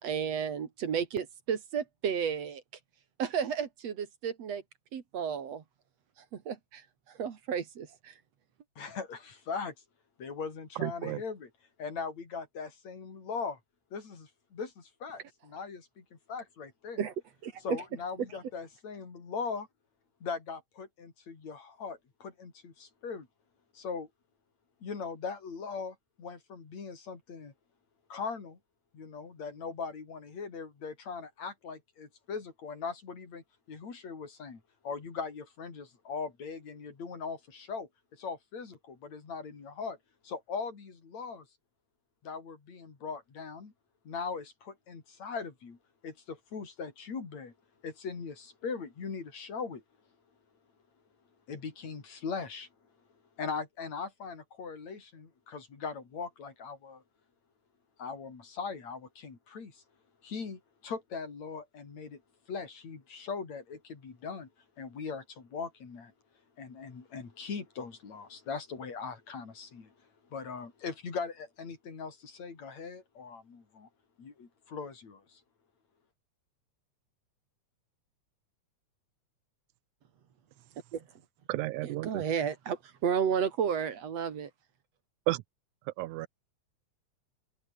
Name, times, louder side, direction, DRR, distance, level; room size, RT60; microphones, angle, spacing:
voice 1, 0.0-2.6 3.2-4.6 4.9-5.6 6.3-8.1 17.0-17.1 17.4-17.6 80.9-81.0 81.8-84.5, right 7 dB, 60° right, 3.0 m, -32 dB
voice 2, 8.8-9.7 10.2-11.5 11.8-13.6 13.9-17.0 17.6-19.7 20.2-23.3 23.7-24.1 24.8-27.5 28.1-28.6 28.9-40.0 40.2-41.5 42.2-43.7 44.1-45.8 46.0-47.5 47.8-49.8 51.5-52.7 53.4-57.0 58.0-59.8 60.2-62.2 62.5-64.5 64.8-66.1 66.6-69.9 70.3-73.9 74.2-75.4, left 5 dB, 65° left, 5.3 m, -40 dB
voice 3, 10.8-11.2 81.5-82.2 85.3-85.4 85.9-86.3, right 18 dB, 85° right, 2.1 m, -32 dB
omnidirectional pair, 3.4 m